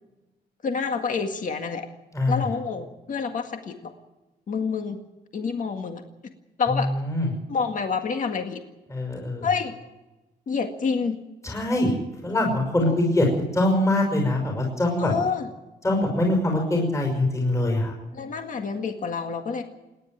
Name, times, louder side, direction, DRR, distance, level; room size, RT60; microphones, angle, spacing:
voice 1, 0.6-1.9 2.3-3.9 4.5-5.0 5.3-6.0 6.6-6.9 7.5-8.6 9.4-9.7 10.5-11.2 12.8-13.0 15.0-15.5 18.1-19.6, left 5 dB, 50° left, 5 dB, 1.9 m, -28 dB
voice 2, 2.1-2.5 6.7-7.3 8.9-9.5 11.4-12.0 12.2-13.3 13.5-15.1 15.8-17.9, left 1 dB, 15° left, 1 dB, 5.7 m, -23 dB
28.0 x 11.0 x 9.3 m, 1.0 s
wide cardioid pair, 175°, 17 cm